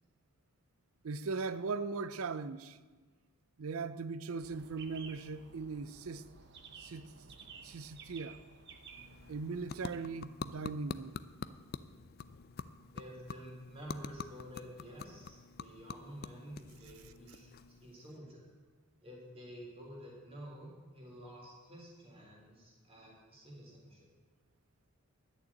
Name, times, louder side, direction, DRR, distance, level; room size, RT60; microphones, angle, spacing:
voice 1, 1.0-2.8 3.6-6.2 6.8-7.1 7.6-8.4 9.3-11.2, right 4 dB, 70° right, 0.5 m, -39 dB
sound 1, 4.4-10.0, right 5 dB, 50° right, 0.9 m, -54 dB
sound 2, 8.7-18.2, left 5 dB, 45° left, 0.4 m, -47 dB
voice 2, 12.9-17.5 17.8-18.4 19.0-24.1, equal, 25° right, 3.5 m, -50 dB
11.5 x 6.7 x 8.7 m
head